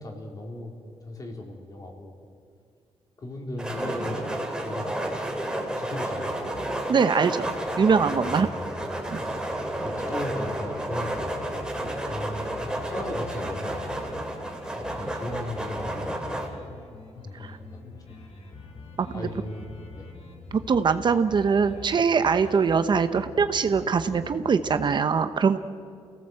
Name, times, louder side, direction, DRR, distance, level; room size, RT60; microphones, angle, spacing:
voice 1, 0.0-2.2 3.2-5.1 5.7-6.3 8.2-8.8 9.1-9.5 9.8-11.7 12.1-13.8 14.7-16.7 17.1-18.2 19.1-20.1, left 1 dB, 35° left, 1 dB, 4.0 m, -37 dB
sound 1, 3.6-16.5, right 1 dB, 5° right, 3.3 m, -31 dB
sound 2, 6.1-25.0, left 4 dB, 70° left, 3.9 m, -45 dB
voice 2, 6.9-7.5 7.8-8.5 9.1-9.2 17.4-17.6 19.0-19.3 20.5-25.6, right 5 dB, 45° right, 10 dB, 1.0 m, -22 dB
29.5 x 17.5 x 7.9 m, 2.3 s
wide cardioid pair, 140°, 11 cm